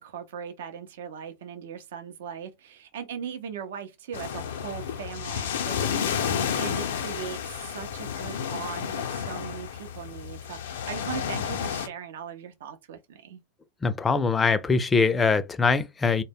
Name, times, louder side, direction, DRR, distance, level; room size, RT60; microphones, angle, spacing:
voice 1, 0.0-13.4, right 8 dB, 80° right, 0.5 m, -39 dB
sound 1, 4.1-11.9, left 8 dB, 85° left, 0.5 m, -31 dB
voice 2, 13.8-16.2, left 4 dB, 20° left, 0.4 m, -23 dB
2.1 x 2.0 x 3.4 m
hypercardioid pair, 115°, 0 cm